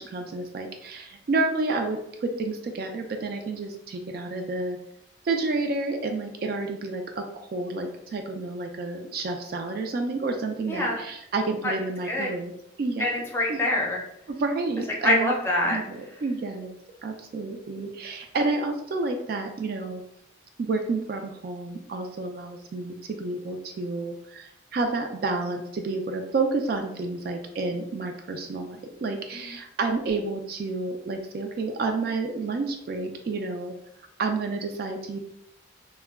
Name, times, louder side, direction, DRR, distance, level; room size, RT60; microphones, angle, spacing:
voice 1, 0.0-4.8 5.2-12.5 12.8-13.1 13.5-13.6 14.3-15.3 15.6-16.7 17.0-20.0 20.6-33.7 34.2-35.2, right 3 dB, 55° right, 4 dB, 0.3 m, -30 dB
voice 2, 13.0-14.0 15.0-15.8 29.3-29.5, left 1 dB, 15° left, -2 dB, 0.5 m, -25 dB
2.2 x 2.1 x 3.4 m, 0.78 s
head